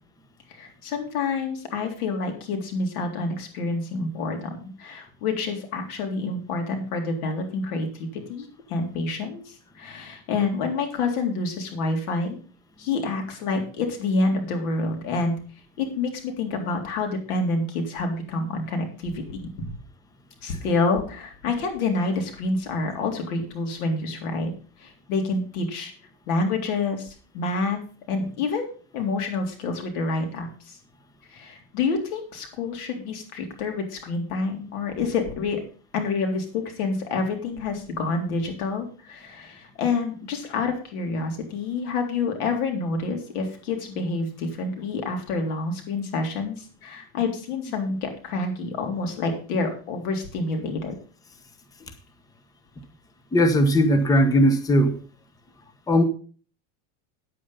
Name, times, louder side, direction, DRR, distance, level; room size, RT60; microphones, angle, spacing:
voice 1, 0.5-12.4 12.8-15.3 15.8-19.5 20.4-24.5 24.8-25.9 26.3-27.8 28.1-28.7 28.9-30.8 31.3-35.6 35.9-50.9, left 3 dB, 85° left, 3 dB, 3.7 m, -28 dB
voice 2, 53.3-55.0 55.9-56.0, equal, 10° left, 7 dB, 1.0 m, -18 dB
9.4 x 8.5 x 5.6 m, 0.40 s
supercardioid pair, 150°, 43 cm